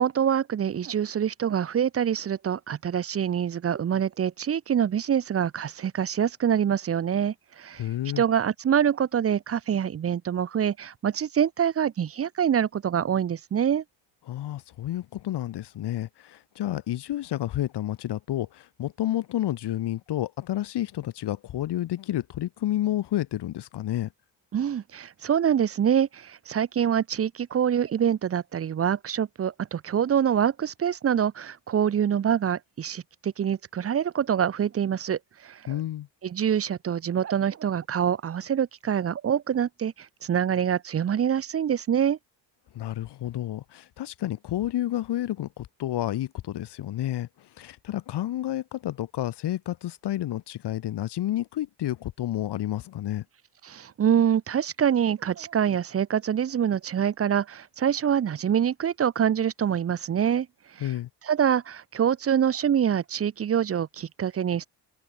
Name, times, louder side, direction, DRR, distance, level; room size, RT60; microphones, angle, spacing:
voice 1, 0.0-7.8 8.2-13.8 24.5-35.8 36.2-39.9 40.2-42.2 53.6-60.5 60.8-60.9 61.2-64.7, right 8 dB, 35° right, 0.8 m, -25 dB
voice 2, 7.8-8.2 14.3-24.1 35.7-36.1 42.7-53.2 60.8-61.1, left 13 dB, 70° left, 2.6 m, -30 dB
open air
cardioid pair, 160°, 42 cm